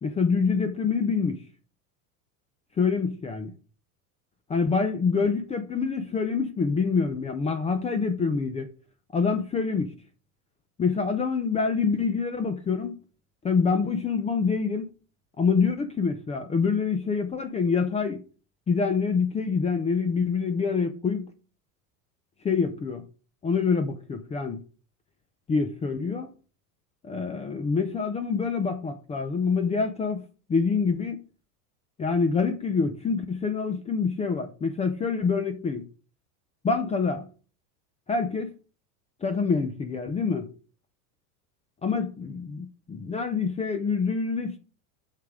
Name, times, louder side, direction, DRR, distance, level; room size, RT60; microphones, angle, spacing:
voice 1, 0.0-1.4 2.8-3.5 4.5-8.7 9.1-9.9 10.8-12.9 13.4-14.9 15.4-18.2 18.7-21.3 22.4-23.0 23.4-24.6 25.5-26.3 27.0-30.2 30.5-31.2 32.0-35.8 36.6-37.3 38.1-38.5 39.2-40.5 41.8-44.6, left 5 dB, 15° left, 0.6 m, -26 dB
9.3 x 6.6 x 3.7 m
supercardioid pair, 135°, 47 cm